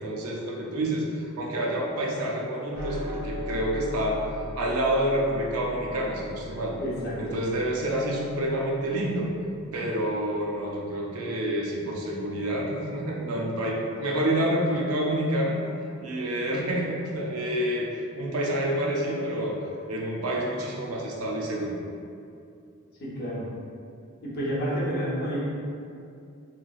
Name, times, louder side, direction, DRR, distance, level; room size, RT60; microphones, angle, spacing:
voice 1, 0.0-6.8 7.2-9.3 9.7-15.6 16.0-19.6 19.9-21.8, right 1 dB, 80° right, -2 dB, 0.5 m, -28 dB
sound 1, 2.7-9.3, equal, 10° right, 0.8 m, -39 dB
voice 2, 6.8-7.4 23.0-23.4 24.2-25.4, equal, 45° left, -6 dB, 0.7 m, -30 dB
3.1 x 2.8 x 2.3 m, 2.5 s
head